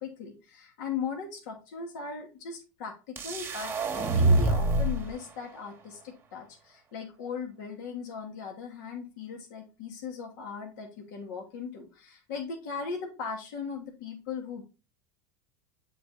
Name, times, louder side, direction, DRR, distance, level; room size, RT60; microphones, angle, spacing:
voice 1, 0.0-14.6, left 5 dB, 75° left, 2 dB, 1.5 m, -38 dB
sound 1, 3.2-5.1, right 2 dB, 25° right, 1.0 m, -25 dB
7.8 x 3.9 x 3.8 m, 0.31 s
supercardioid pair, 120°, 10 cm